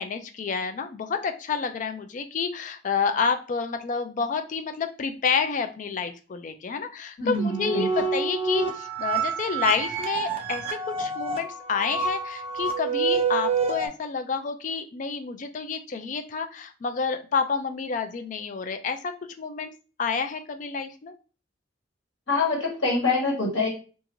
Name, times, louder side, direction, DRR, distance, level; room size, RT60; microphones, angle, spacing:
voice 1, 0.0-19.7 20.0-21.1, left 5 dB, 40° left, 7 dB, 0.3 m, -29 dB
voice 2, 7.2-7.9 22.3-23.7, left 3 dB, 70° left, -4 dB, 1.5 m, -25 dB
sound 1, 7.3-13.9, right 5 dB, 30° right, 0.5 m, -28 dB
2.8 x 2.4 x 2.5 m, 0.36 s
head